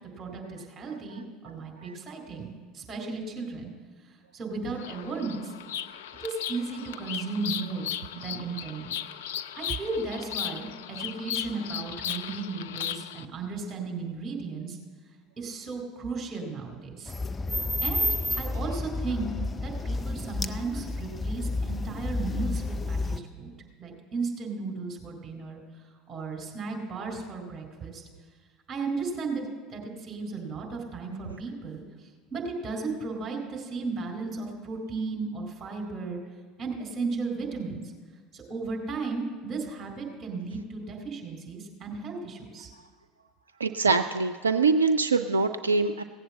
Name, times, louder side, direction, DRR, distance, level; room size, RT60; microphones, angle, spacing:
voice 1, 0.0-2.5 2.7-3.7 4.0-5.5 6.2-8.9 9.6-14.8 15.4-17.1 17.8-18.1 18.4-19.3 19.6-23.5 23.8-25.6 26.1-28.0 28.7-36.2 36.6-37.8 38.3-42.7, right 4 dB, 30° right, 1 dB, 4.1 m, -35 dB
Bird vocalization bird call bird song, 4.7-13.3, left 10 dB, 65° left, 0.4 m, -36 dB
sound 1, 17.1-23.2, left 2 dB, 20° left, 0.6 m, -30 dB
voice 2, 43.6-46.0, right 4 dB, 80° right, 8 dB, 0.3 m, -24 dB
17.0 x 7.9 x 7.4 m, 1.5 s
figure-of-eight pair, 70°, 0 cm